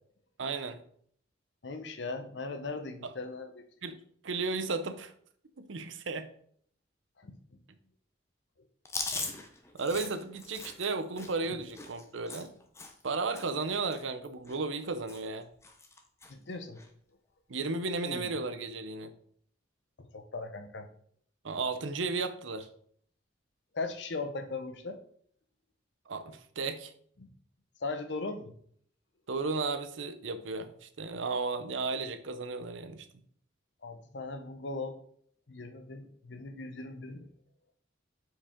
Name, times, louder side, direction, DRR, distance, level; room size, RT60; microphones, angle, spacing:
voice 1, 0.4-0.8 3.0-3.1 3.8-4.0 4.2-5.1 5.6-6.3 9.1-9.3 9.7-12.5 13.0-15.5 17.5-19.1 21.4-22.7 26.1-26.9 29.3-33.1, right 3 dB, 80° right, 11 dB, 0.7 m, -34 dB
voice 2, 1.6-3.6 7.2-7.3 16.3-16.8 20.0-20.9 23.7-25.0 27.2-27.3 27.8-28.5 33.8-35.0 35.5-37.3, left 3 dB, 65° left, 9 dB, 0.8 m, -38 dB
Chewing mastication, 8.8-13.1 13.3-13.6 13.9-14.8 15.1-15.4 15.6-16.3 16.7-16.9 17.9-18.3, left 3 dB, 15° left, 0.7 m, -41 dB
7.2 x 4.7 x 3.7 m, 0.62 s
head